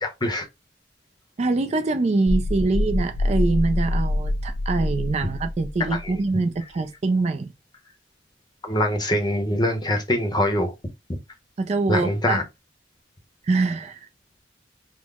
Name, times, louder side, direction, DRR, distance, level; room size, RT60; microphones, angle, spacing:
voice 1, 0.0-0.5 5.8-6.1 8.6-10.7 11.9-12.4, left 1 dB, 20° left, 0.7 m, -23 dB
voice 2, 1.4-7.5 11.6-12.4 13.4-14.1, right 3 dB, 35° right, 0.3 m, -24 dB
sound 1, 2.3-6.3, left 1 dB, 75° left, 0.6 m, -25 dB
3.7 x 2.0 x 3.4 m
head